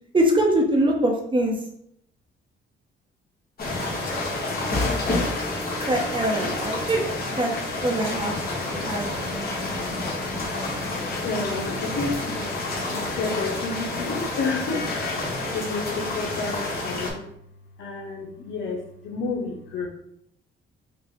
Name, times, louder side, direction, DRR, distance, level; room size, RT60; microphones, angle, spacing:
voice 1, 0.1-1.5 5.9-7.0 7.3-7.5 7.8-8.3 8.6-9.5, right 1 dB, 25° right, 1 dB, 1.0 m, -23 dB
sound 1, 3.6-17.1, left 2 dB, 50° left, 1.6 m, -29 dB
voice 2, 8.1-10.5 11.2-12.4 12.9-14.8 15.5-17.2 17.8-19.9, left 3 dB, 70° left, -2 dB, 0.8 m, -31 dB
4.8 x 2.4 x 3.7 m, 0.73 s
cardioid pair, 90°, 20 cm